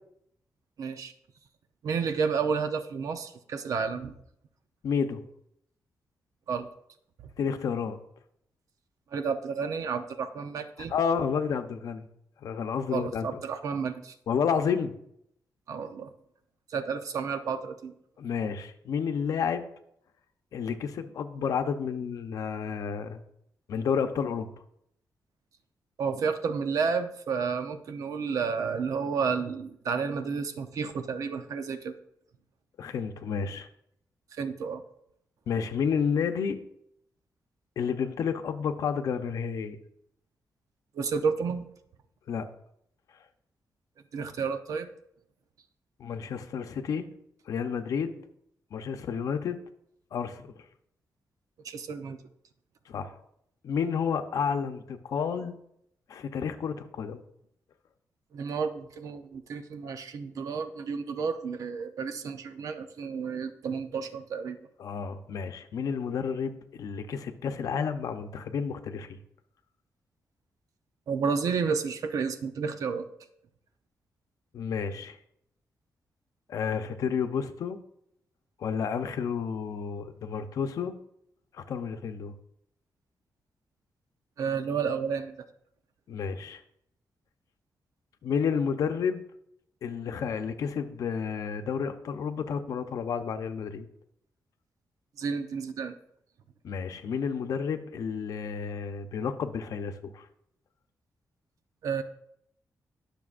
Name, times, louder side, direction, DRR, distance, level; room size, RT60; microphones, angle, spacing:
voice 1, 0.8-1.1 1.8-4.1 6.5-6.7 9.1-10.9 12.9-14.1 15.7-16.1 16.7-17.9 26.0-32.0 34.3-34.8 40.9-41.7 44.1-44.9 51.6-52.2 58.3-64.6 71.1-73.1 84.4-85.4 95.2-95.9 101.8-102.0, right 5 dB, 65° right, 8 dB, 0.8 m, -31 dB
voice 2, 4.8-5.2 7.4-8.0 10.9-12.1 12.4-13.4 14.3-14.9 18.2-19.6 20.5-23.2 23.7-24.5 32.8-33.7 35.5-36.6 37.8-39.8 42.3-42.4 46.0-47.0 47.5-48.1 48.7-49.6 50.1-50.5 52.9-53.2 53.6-55.5 56.1-57.2 64.8-69.2 74.5-75.2 76.5-77.8 78.6-80.9 81.5-82.3 86.1-86.6 88.2-89.2 89.8-93.9 96.6-100.3, left 6 dB, 70° left, 8 dB, 0.8 m, -30 dB
20.5 x 6.8 x 2.6 m, 0.75 s
wide cardioid pair, 170°, 6 cm